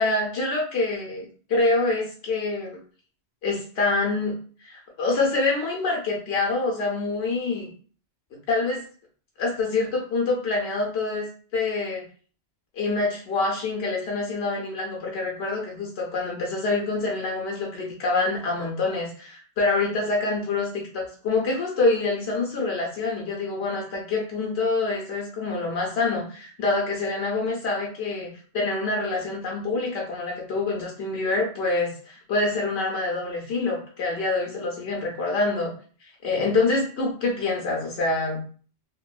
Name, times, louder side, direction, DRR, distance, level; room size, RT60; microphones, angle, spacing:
voice 1, 0.0-2.8 3.4-4.3 4.6-7.7 8.5-8.8 9.4-12.0 12.7-35.7 36.0-38.4, left 3 dB, 80° left, -1 dB, 0.9 m, -26 dB
2.7 x 2.2 x 2.3 m, 0.43 s
omnidirectional pair, 1.1 m